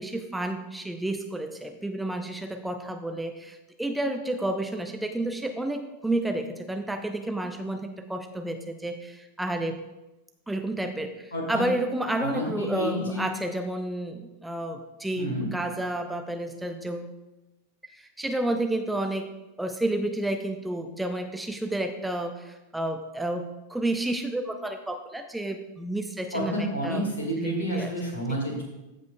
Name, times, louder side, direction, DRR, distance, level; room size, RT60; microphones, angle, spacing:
voice 1, 0.0-9.8 10.5-17.1 17.9-19.3 19.6-27.0 27.4-27.9, right 1 dB, 5° right, 5 dB, 0.5 m, -31 dB
voice 2, 11.3-11.6 12.2-13.3 15.2-15.5 26.3-28.6, equal, 65° left, 0 dB, 1.7 m, -30 dB
14.5 x 5.3 x 2.2 m, 1.0 s
figure-of-eight pair, 90°, 0 cm